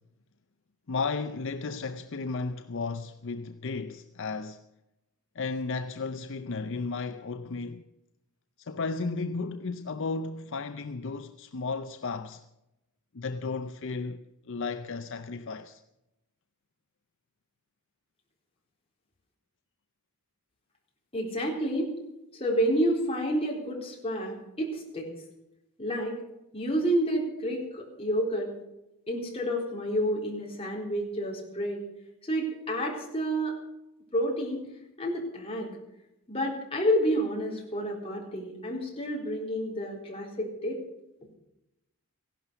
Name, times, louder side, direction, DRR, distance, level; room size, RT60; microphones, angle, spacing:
voice 1, 0.9-4.6 5.3-7.9 8.6-12.4 13.1-15.8, left 4 dB, 55° left, 0.6 m, -34 dB
voice 2, 21.1-21.9 22.3-25.1 25.8-26.2 26.5-28.5 29.1-31.8 32.2-33.6 34.1-34.6 35.0-35.7 36.3-40.8, equal, 25° left, 3.9 m, -29 dB
16.0 x 11.5 x 6.9 m
head